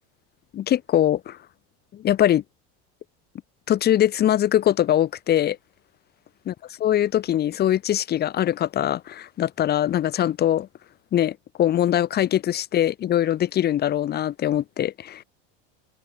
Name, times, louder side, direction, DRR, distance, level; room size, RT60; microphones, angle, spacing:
voice 1, 0.5-1.4 1.9-2.4 3.7-5.6 6.5-6.6 6.8-10.7 11.1-15.2, left 11 dB, 30° left, 2.4 m, -22 dB
cardioid pair, 155°, 32 cm